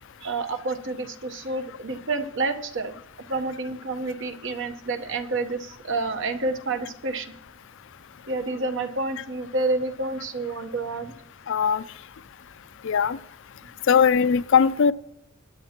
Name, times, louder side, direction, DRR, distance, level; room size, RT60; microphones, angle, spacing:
voice 1, 0.2-2.9 3.3-7.3 8.3-11.1, right 3 dB, 65° right, 8 dB, 1.1 m, -29 dB
voice 2, 11.5-11.8 12.8-13.2 13.9-14.9, left 6 dB, 65° left, 15 dB, 0.4 m, -19 dB
21.5 x 9.5 x 3.0 m, 0.82 s
head